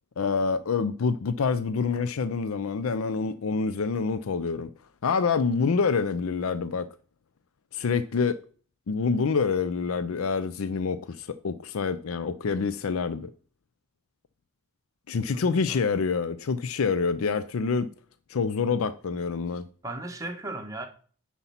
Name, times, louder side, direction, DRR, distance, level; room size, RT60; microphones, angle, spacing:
voice 1, 0.2-4.7 5.0-6.9 7.7-8.4 8.9-13.3 15.1-17.9 18.3-19.7, left 5 dB, 75° left, 0.5 m, -27 dB
voice 2, 15.1-15.8 19.8-20.9, right 2 dB, 15° right, 1.3 m, -37 dB
9.9 x 4.3 x 5.7 m
head